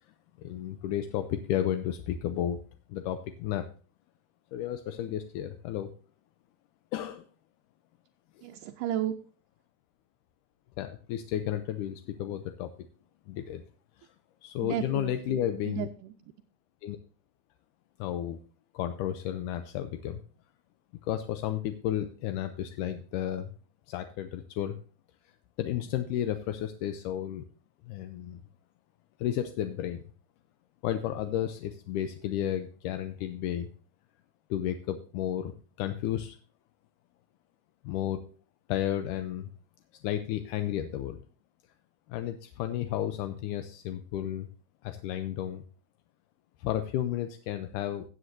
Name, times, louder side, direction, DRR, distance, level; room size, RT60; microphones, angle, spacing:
voice 1, 0.4-2.6 2.9-3.6 4.5-5.9 6.9-7.3 8.4-8.5 10.8-12.7 13.3-13.6 14.0-14.1 14.4-15.9 16.8-17.0 18.0-18.4 18.7-20.2 21.0-23.5 23.9-24.8 25.6-27.5 27.9-28.4 29.2-30.0 30.8-33.7 34.5-36.4 37.8-38.2 38.7-39.5 40.0-41.2 42.1-44.5 44.8-45.6 46.6-48.1, left 11 dB, 80° left, 8 dB, 1.9 m, -32 dB
voice 2, 8.4-9.2 14.6-16.3, right 12 dB, 80° right, 5 dB, 2.0 m, -34 dB
16.0 x 7.9 x 2.6 m, 0.39 s
omnidirectional pair, 4.1 m